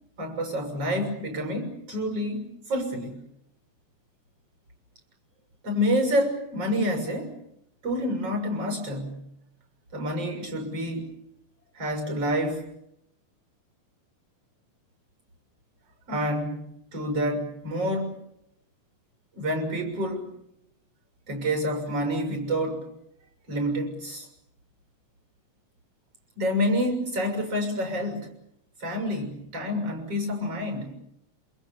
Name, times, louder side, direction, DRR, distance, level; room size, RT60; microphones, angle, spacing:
voice 1, 0.2-3.2 5.6-7.4 7.8-9.2 9.9-11.1 11.8-12.7 16.1-18.2 19.3-20.3 21.3-22.9 23.5-24.3 26.4-28.3 28.8-30.9, equal, 50° right, 5 dB, 7.6 m, -28 dB
27.5 x 25.0 x 7.2 m, 0.78 s
omnidirectional pair, 3.6 m